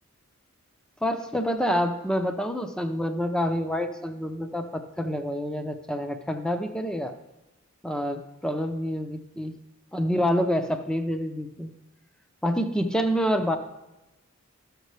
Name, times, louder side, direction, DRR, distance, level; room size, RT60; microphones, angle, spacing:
voice 1, 1.0-7.1 7.8-9.5 9.9-11.7 12.4-13.6, equal, 5° left, 7 dB, 0.6 m, -27 dB
13.0 x 6.6 x 3.2 m, 1.0 s
head